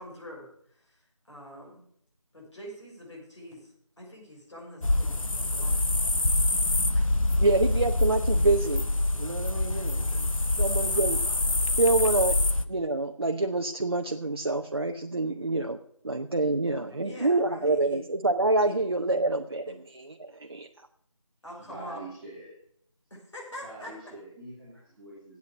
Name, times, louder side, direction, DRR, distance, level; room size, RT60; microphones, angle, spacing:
voice 1, 0.0-1.8 2.3-5.8 6.9-7.2 8.6-8.7 16.8-18.0 18.6-18.8 19.6-19.7 21.4-22.0 23.1-23.9, equal, 60° left, -2 dB, 6.4 m, -45 dB
sound 1, 4.8-12.7, left 2 dB, 80° left, 1.0 m, -25 dB
voice 2, 7.4-8.8 9.2-10.3 10.6-11.2 11.8-12.3 12.7-15.8 16.0-20.7, right 2 dB, 50° right, 3 dB, 0.6 m, -27 dB
voice 3, 21.6-22.6 23.6-25.4, right 2 dB, ahead, -14 dB, 2.1 m, -44 dB
8.5 x 8.3 x 8.4 m, 0.68 s
figure-of-eight pair, 175°, 17 cm